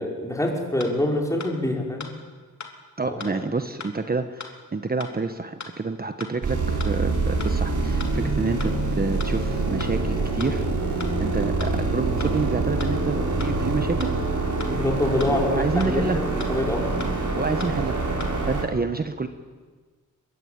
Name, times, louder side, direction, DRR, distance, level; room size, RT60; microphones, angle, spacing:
voice 1, 0.0-2.1 3.0-3.4 14.7-17.0 17.3-17.5, left 1 dB, 10° left, 0 dB, 5.3 m, -26 dB
sound 1, 0.8-0.9 1.4-1.5 2.0-2.1 2.6-2.7 3.2-3.3 3.8-3.9 4.4-4.5 5.0-5.1 5.6-5.7 6.2-6.3 6.8-6.9 7.4-7.5 8.0-8.1 8.6-8.7 9.2-9.3 9.8-9.9 10.4-10.5 11.0-11.1 11.6-11.7 12.2-12.3 12.8-12.9 13.4-13.5 14.0-14.1 14.6-14.7 15.2-15.3 15.8-15.9 16.4-16.5 17.0-17.1 17.6-17.7 18.2-18.3, left 5 dB, 50° left, 3.2 m, -36 dB
voice 2, 3.0-14.1 15.3-16.2 17.4-18.0 18.5-19.3, right 3 dB, 25° right, 8 dB, 1.2 m, -28 dB
sound 2, 6.4-18.6, right 3 dB, 55° right, 5.0 m, -25 dB
22.5 x 22.5 x 9.0 m, 1.5 s
wide cardioid pair, 110°, 36 cm